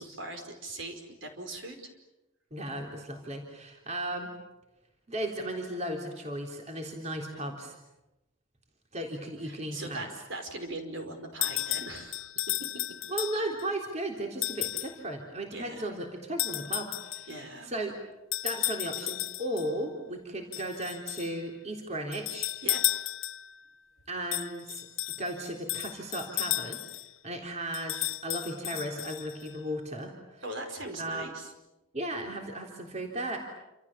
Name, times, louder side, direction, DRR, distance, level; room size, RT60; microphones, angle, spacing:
voice 1, 0.0-1.9 9.4-12.8 15.5-15.9 17.3-17.7 22.6-22.8 30.4-31.5, right 2 dB, 65° right, 6 dB, 4.9 m, -40 dB
voice 2, 2.5-4.3 5.1-7.7 8.9-10.1 13.1-17.3 17.6-18.0 18.4-22.5 24.1-24.9 25.2-26.8 27.2-30.4 31.0-31.3 31.9-33.4, right 1 dB, 35° right, 1 dB, 3.5 m, -35 dB
sound 1, 11.4-13.6 14.4-15.0 16.4-17.4 18.3-19.7 20.5-21.3 22.1-23.6 24.3-27.1 27.7-29.5, left 16 dB, 75° left, 0.9 m, -33 dB
29.0 x 27.5 x 7.4 m, 0.97 s
head